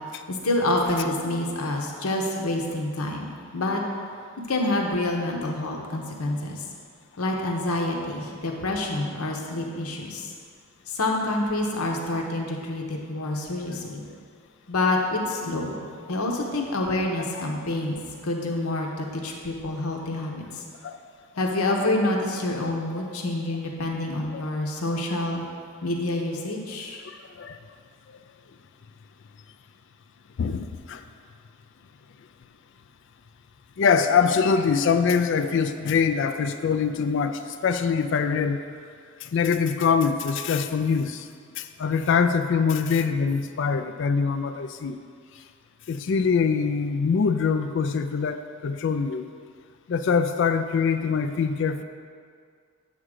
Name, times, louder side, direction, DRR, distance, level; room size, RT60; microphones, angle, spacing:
voice 1, 0.3-3.8 4.5-6.6 7.2-10.3 10.9-14.0 14.7-18.0 18.2-20.6 21.4-25.4 25.8-27.0, left 2 dB, 80° left, 1 dB, 1.0 m, -27 dB
voice 2, 27.0-27.6 30.4-31.0 33.8-38.6 39.2-41.3 41.6-45.0 45.9-49.3 49.9-51.8, left 5 dB, 55° left, 9 dB, 0.3 m, -24 dB
8.0 x 3.7 x 6.4 m, 2.2 s
head